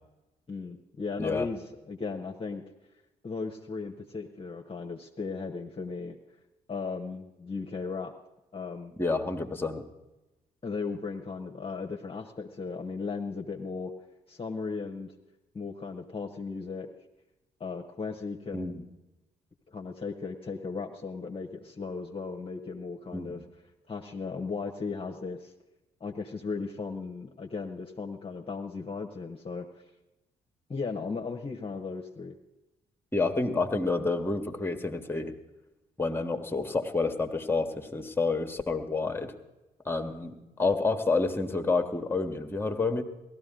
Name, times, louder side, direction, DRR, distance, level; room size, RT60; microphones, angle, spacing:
voice 1, 0.5-2.6 3.2-6.2 6.7-8.1 8.5-8.9 10.6-13.9 14.3-15.1 15.5-16.9 17.6-18.8 19.7-23.4 23.9-25.5 26.0-29.7 30.7-32.3, left 4 dB, 30° left, 1 dB, 1.1 m, -36 dB
voice 2, 9.0-9.8 18.5-18.8 23.1-23.3 33.1-35.3 36.0-39.3 39.8-43.0, left 3 dB, 10° left, 7 dB, 1.5 m, -29 dB
17.5 x 13.0 x 3.8 m, 1.0 s
hypercardioid pair, 40°, 19 cm